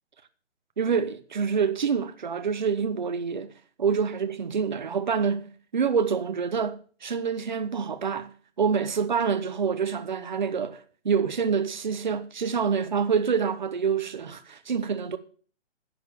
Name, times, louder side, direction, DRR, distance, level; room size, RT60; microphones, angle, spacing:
voice 1, 0.8-3.5 3.8-8.3 8.6-10.8 11.0-15.2, right 6 dB, 40° right, 0.8 m, -26 dB
10.5 x 6.8 x 6.9 m
hypercardioid pair, 180°, 37 cm